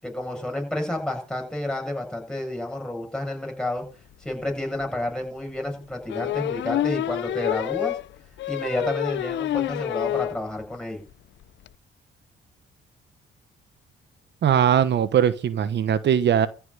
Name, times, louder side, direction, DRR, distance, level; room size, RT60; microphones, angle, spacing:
voice 1, 0.0-3.8 4.2-8.0 8.5-11.0, left 1 dB, 5° left, 7.7 m, -30 dB
sound 1, 4.3-4.4 4.8-4.9 6.1-10.4 10.8-10.9 11.1-11.2 11.4-11.7, left 13 dB, 70° left, 0.6 m, -28 dB
voice 2, 14.4-16.5, right 9 dB, 60° right, 1.2 m, -20 dB
14.5 x 5.8 x 9.7 m
cardioid pair, 90°, 20 cm